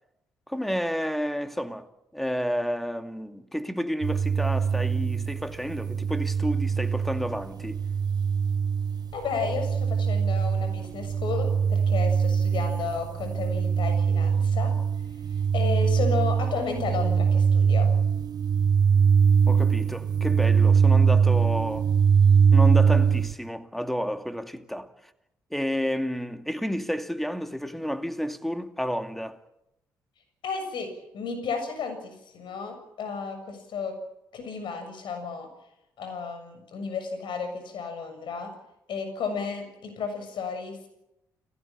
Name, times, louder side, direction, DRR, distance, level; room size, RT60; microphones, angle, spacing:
voice 1, 0.5-7.8 19.5-21.9 22.5-24.9 25.5-29.4, equal, ahead, 2.3 m, -30 dB
sound 1, 4.0-23.3, right 6 dB, 45° right, 1.1 m, -22 dB
voice 2, 9.1-14.7 15.5-17.9 30.4-34.0 34.3-35.5 36.0-38.5 38.9-40.9, left 5 dB, 55° left, 6.9 m, -33 dB
30.0 x 17.0 x 8.9 m
figure-of-eight pair, 45°, 9 cm